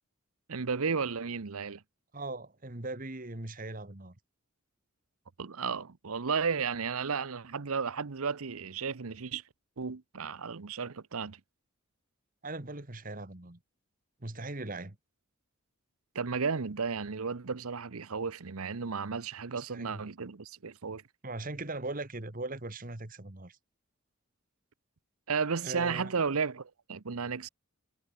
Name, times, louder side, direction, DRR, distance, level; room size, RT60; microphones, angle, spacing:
voice 1, 0.5-1.8 5.4-9.4 9.8-11.4 16.1-21.0 25.3-27.5, right 5 dB, 85° right, 0.8 m, -33 dB
voice 2, 2.1-4.1 12.4-13.6 14.2-15.0 19.5-20.1 21.2-23.6 25.6-26.2, right 2 dB, 40° right, 1.8 m, -39 dB
head